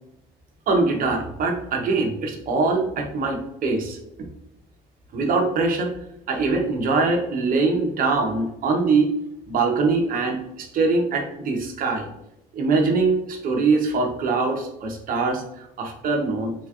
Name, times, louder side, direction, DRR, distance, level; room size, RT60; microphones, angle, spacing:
voice 1, 0.7-4.3 5.1-5.9 6.3-9.1 9.5-12.1 12.5-16.5, right 3 dB, 55° right, 2 dB, 0.8 m, -23 dB
3.3 x 3.1 x 2.4 m, 0.82 s
cardioid pair, 110°, 17 cm